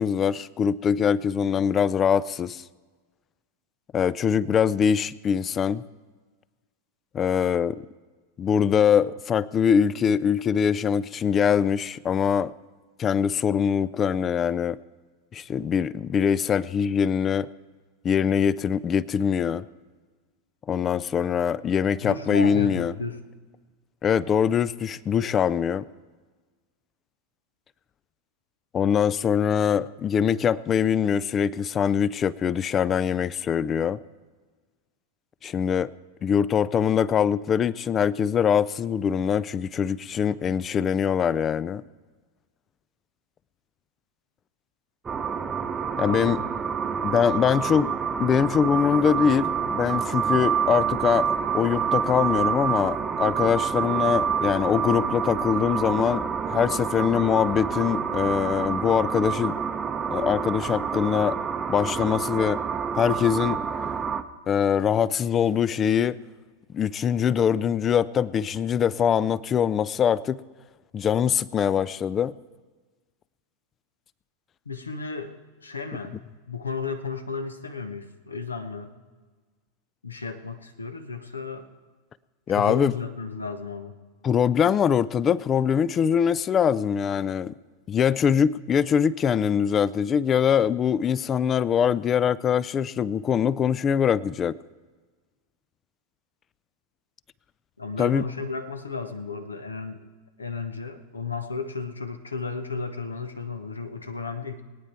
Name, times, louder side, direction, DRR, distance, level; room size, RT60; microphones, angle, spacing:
voice 1, 0.0-2.6 3.9-5.8 7.1-7.9 8.4-12.5 13.0-14.8 15.3-17.5 18.0-19.6 20.7-22.9 24.0-25.9 28.7-34.0 35.4-35.9 36.2-41.8 46.0-46.4 47.0-47.9 48.2-51.3 51.5-59.6 60.1-61.4 61.7-62.6 62.9-63.6 64.5-66.2 66.7-70.4 70.9-72.3 82.5-82.9 84.2-87.5 87.9-94.6 98.0-98.2, left 7 dB, 25° left, 21 dB, 0.4 m, -23 dB
voice 2, 22.0-23.2 46.0-46.4 74.7-76.2 76.5-78.9 80.0-81.7 82.5-83.9 97.8-100.0 100.4-104.6, left 4 dB, 75° left, 10 dB, 1.0 m, -33 dB
sound 1, 45.0-64.2, right 7 dB, 20° right, 0.7 m, -28 dB
22.0 x 9.2 x 4.4 m, 1.4 s
figure-of-eight pair, 90°, 0 cm